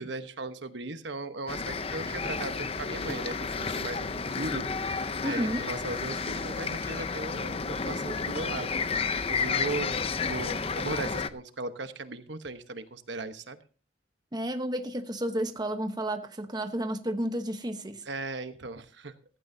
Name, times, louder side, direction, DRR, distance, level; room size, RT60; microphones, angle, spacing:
voice 1, 0.0-8.7 9.3-13.6 18.0-19.1, right 3 dB, 75° right, 1.1 m, -37 dB
sound 1, 1.5-11.3, left 5 dB, 30° left, 0.6 m, -31 dB
voice 2, 5.2-5.7 14.3-18.0, right 1 dB, 25° right, 1.0 m, -31 dB
15.5 x 15.0 x 2.8 m
head